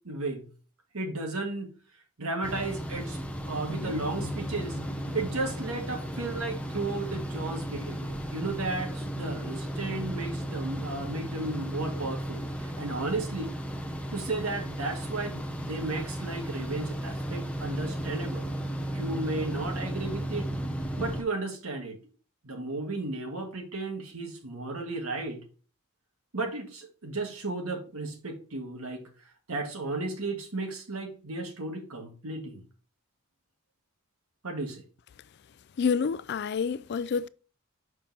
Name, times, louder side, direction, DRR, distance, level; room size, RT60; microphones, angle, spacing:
voice 1, 0.0-0.5 0.9-1.7 2.2-3.2 3.5-4.8 5.1-13.5 14.1-18.5 18.9-20.5 21.0-22.0 22.4-25.4 26.3-29.1 29.5-32.6 34.4-34.8, right 2 dB, 80° right, 1.9 m, -34 dB
sound 1, 2.4-21.2, right 1 dB, 5° left, 0.7 m, -35 dB
sound 2, 3.7-6.9, left 2 dB, 70° left, 0.7 m, -42 dB
voice 2, 35.8-37.3, left 6 dB, 50° left, 0.3 m, -28 dB
7.1 x 5.3 x 2.8 m
head